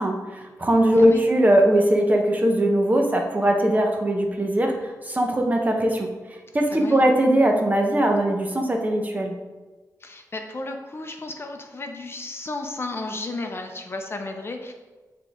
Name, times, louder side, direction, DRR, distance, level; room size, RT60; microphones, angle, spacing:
voice 1, 0.0-6.1 6.5-9.3, right 1 dB, 25° right, 2 dB, 0.9 m, -20 dB
voice 2, 0.9-1.2 6.7-7.0 10.0-14.7, left 2 dB, 35° left, 4 dB, 0.7 m, -33 dB
8.8 x 3.8 x 3.6 m, 1.3 s
wide cardioid pair, 95°, 7 cm